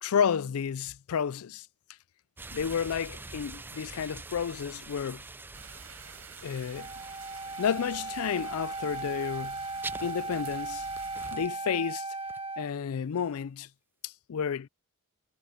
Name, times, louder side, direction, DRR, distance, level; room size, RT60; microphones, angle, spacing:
voice 1, 0.0-1.7 2.5-5.2 6.4-6.9 7.6-9.6 10.0-10.9 11.3-12.0 12.6-13.7 14.0-14.7, left 7 dB, 75° left, 0.4 m, -31 dB
sound 1, 2.4-11.7 12.3-12.4, right 3 dB, 10° right, 0.3 m, -46 dB
sound 2, 5.5-11.4, right 7 dB, 85° right, 5.3 m, -50 dB
Wind instrument woodwind instrument, 6.7-12.7, right 3 dB, 25° right, 1.8 m, -37 dB
head